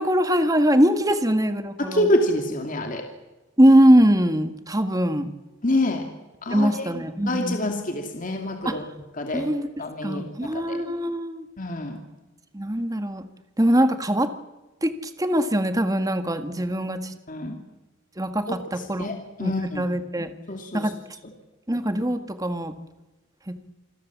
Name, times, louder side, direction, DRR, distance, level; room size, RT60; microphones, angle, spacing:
voice 1, 0.0-2.1 3.6-5.3 6.5-7.6 8.7-8.8 9.3-9.7 10.0-11.5 12.5-13.2 13.6-14.3 14.8-17.1 18.2-19.1 19.4-20.3 20.7-20.9 21.7-22.7 23.5-23.6, equal, 20° right, 9 dB, 1.8 m, -22 dB
voice 2, 1.8-3.0 5.6-6.0 6.4-8.8 9.2-9.5 9.8-10.8 11.6-12.0 17.3-17.6 18.7-19.8 20.5-20.9, left 1 dB, 40° left, 4 dB, 2.7 m, -27 dB
28.0 x 21.0 x 7.5 m, 1.1 s
head